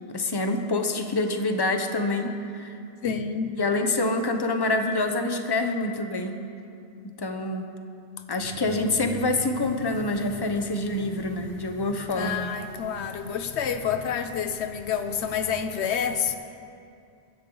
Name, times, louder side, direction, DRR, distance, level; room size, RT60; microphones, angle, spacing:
voice 1, 0.1-2.8 3.6-6.4 7.0-7.7 8.3-12.5, left 2 dB, 25° left, 5 dB, 0.9 m, -26 dB
voice 2, 3.0-3.6 12.1-16.4, left 7 dB, 85° left, 8 dB, 1.1 m, -28 dB
23.0 x 10.5 x 4.0 m, 2.6 s
omnidirectional pair, 1.1 m